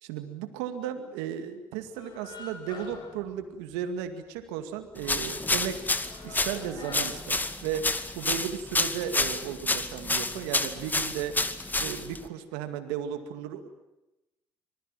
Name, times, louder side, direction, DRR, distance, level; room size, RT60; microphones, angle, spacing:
voice 1, 0.0-5.9 6.2-11.4 11.7-13.7, right 9 dB, 85° right, 8 dB, 2.2 m, -35 dB
sound 1, 1.9-4.1 4.4-4.5 4.8-8.1, left 4 dB, 50° left, 7.3 m, -46 dB
sound 2, 5.0-12.3, left 2 dB, 20° left, 2.2 m, -29 dB
25.5 x 20.0 x 9.1 m, 0.94 s
hypercardioid pair, 55°, 9 cm